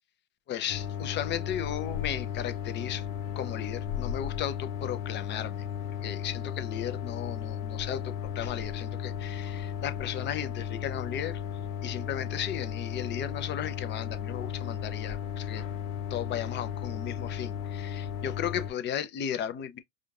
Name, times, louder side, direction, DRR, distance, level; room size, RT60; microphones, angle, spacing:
voice 1, 0.5-3.0 3.4-5.6 6.0-11.4 11.8-15.6 16.1-19.8, left 9 dB, 30° left, 0.6 m, -35 dB
sound 1, 0.7-18.7, left 9 dB, 85° left, 0.9 m, -35 dB
5.0 x 2.4 x 2.4 m
hypercardioid pair, 110°, 39 cm